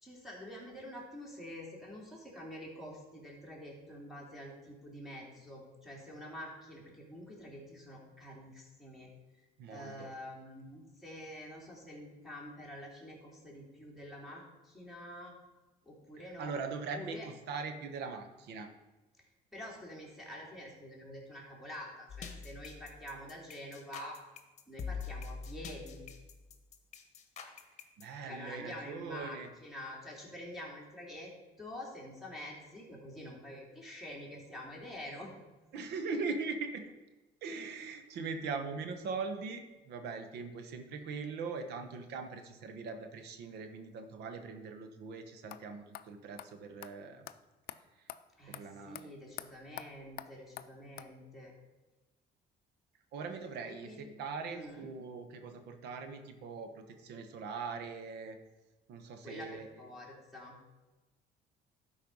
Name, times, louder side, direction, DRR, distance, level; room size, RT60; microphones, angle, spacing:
voice 1, 0.0-9.1 9.7-15.3 15.8-16.5 16.9-17.3 19.5-24.2 24.7-26.0 28.2-31.3 31.6-35.4 48.3-51.5 53.7-54.1 54.5-54.9 59.2-60.6, left 1 dB, ahead, -4 dB, 2.9 m, -47 dB
voice 2, 9.6-10.1 16.4-18.7 28.0-29.5 35.7-36.9 37.4-47.3 48.5-49.1 53.1-58.4 58.9-59.7, right 4 dB, 80° right, 7 dB, 1.2 m, -41 dB
sound 1, 22.1-28.0, left 5 dB, 45° left, 1.1 m, -44 dB
sound 2, 45.5-45.6 45.9-46.1 46.4-46.5 46.8-46.9 47.3-47.4 47.7-47.8 48.1-48.2 48.5-48.6 48.9-49.0 49.4-49.5 49.8-49.9 50.2-50.3 50.6-50.7 51.0-51.1, left 13 dB, 65° left, 0.5 m, -44 dB
12.0 x 4.7 x 5.4 m, 1.1 s
cardioid pair, 110°, 17 cm